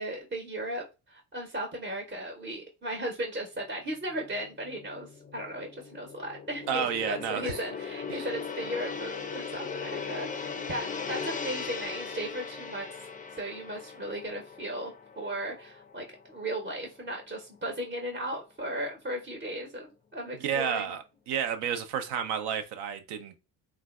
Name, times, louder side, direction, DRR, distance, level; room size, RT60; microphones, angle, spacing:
voice 1, 0.0-12.9 13.4-21.0, right 1 dB, 25° right, 0.8 m, -36 dB
Gong, 4.2-16.7 17.0-17.3, left 5 dB, 20° left, 0.4 m, -39 dB
voice 2, 6.7-7.6 8.1-8.3 20.4-23.4, right 8 dB, 65° right, 0.5 m, -31 dB
3.2 x 2.2 x 2.3 m
hypercardioid pair, 45°, 44 cm